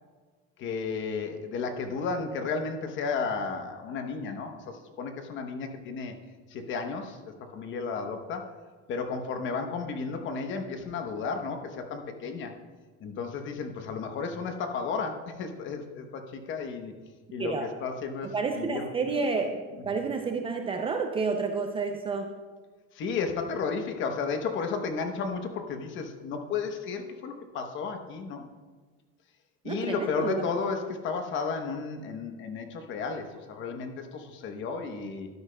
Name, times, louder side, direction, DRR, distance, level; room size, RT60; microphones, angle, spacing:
voice 1, 0.6-6.1 6.5-8.5 8.9-12.5 13.0-16.9 17.3-18.9 22.9-28.5 29.6-35.3, left 5 dB, 40° left, 6 dB, 0.9 m, -33 dB
voice 2, 18.2-22.3 29.6-30.4, right 4 dB, 20° right, 4 dB, 0.4 m, -30 dB
12.0 x 10.0 x 2.2 m, 1.4 s
cardioid pair, 165°, 30 cm